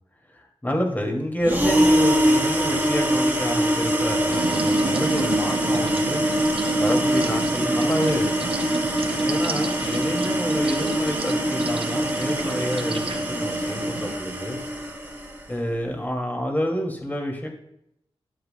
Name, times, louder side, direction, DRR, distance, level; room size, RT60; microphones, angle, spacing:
voice 1, 0.3-6.2 6.8-8.6 9.2-14.6 15.5-17.5, equal, 15° left, 0 dB, 2.4 m, -28 dB
sound 1, 1.4-15.4, right 1 dB, 20° right, 1.6 m, -23 dB
sound 2, 4.3-14.1, right 4 dB, 60° right, 0.7 m, -32 dB
12.0 x 7.7 x 2.3 m, 0.79 s
cardioid pair, 55°, 10 cm